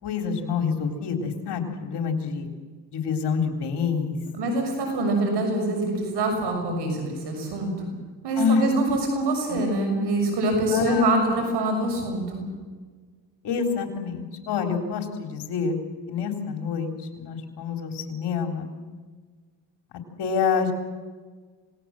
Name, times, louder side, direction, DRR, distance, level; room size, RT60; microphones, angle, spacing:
voice 1, 0.0-2.5 2.9-4.2 8.4-8.7 9.5-9.6 10.7-11.1 13.4-15.8 16.1-18.7 20.2-20.7, left 6 dB, 75° left, 6 dB, 3.8 m, -27 dB
voice 2, 4.4-7.9 8.2-12.5, right 2 dB, 75° right, 3 dB, 6.8 m, -25 dB
26.5 x 19.5 x 7.6 m, 1.4 s
cardioid pair, 85°, 41 cm